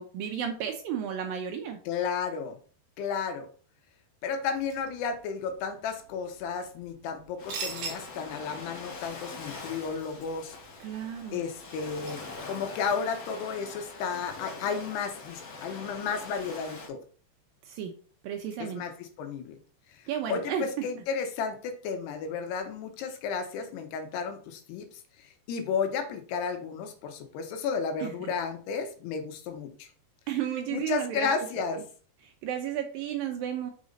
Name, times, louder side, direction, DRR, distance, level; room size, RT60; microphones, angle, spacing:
voice 1, 0.0-1.8 10.8-11.4 17.7-17.9 18.2-18.8 20.1-20.7 28.0-28.3 30.3-31.3 32.4-33.7, right 9 dB, 75° right, 4 dB, 2.2 m, -33 dB
voice 2, 1.9-2.6 3.0-3.5 4.2-10.6 11.3-12.2 12.5-17.0 18.6-19.6 19.9-24.9 25.2-29.9 30.7-31.8, left 6 dB, 85° left, 6 dB, 3.1 m, -33 dB
sound 1, 4.5-12.5, right 5 dB, 60° right, 2.3 m, -45 dB
Ocean, 7.4-16.9, left 3 dB, 50° left, 2.3 m, -43 dB
6.0 x 5.2 x 4.1 m, 0.42 s
omnidirectional pair, 4.6 m